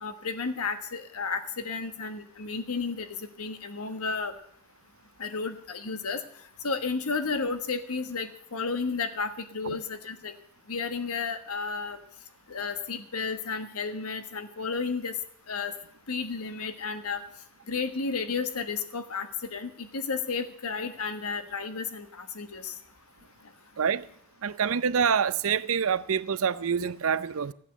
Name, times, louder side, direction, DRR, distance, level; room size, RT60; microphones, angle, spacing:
voice 1, 0.0-3.1 3.4-4.3 5.2-6.2 6.6-10.3 10.7-12.0 12.5-15.1 15.5-15.7 16.1-17.2 17.7-22.7, left 4 dB, 75° left, 1.3 m, -32 dB
voice 2, 24.4-27.5, right 7 dB, 65° right, 0.6 m, -26 dB
14.5 x 8.7 x 7.9 m
head